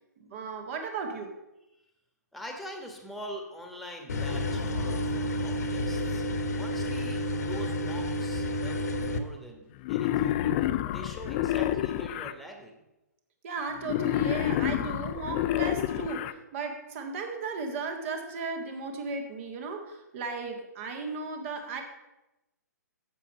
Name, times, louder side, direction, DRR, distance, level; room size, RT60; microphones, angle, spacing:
voice 1, 0.2-1.3 13.4-21.8, right 4 dB, 45° right, 4 dB, 1.7 m, -35 dB
voice 2, 2.3-6.2 6.6-10.4 10.9-12.8, equal, ahead, 2 dB, 1.4 m, -44 dB
sound 1, 4.1-9.2, left 1 dB, 65° left, 1.0 m, -30 dB
Wild animals, 9.8-12.3 13.8-16.3, left 12 dB, 35° left, 0.4 m, -28 dB
7.4 x 7.3 x 5.4 m, 0.96 s
figure-of-eight pair, 125°, 10 cm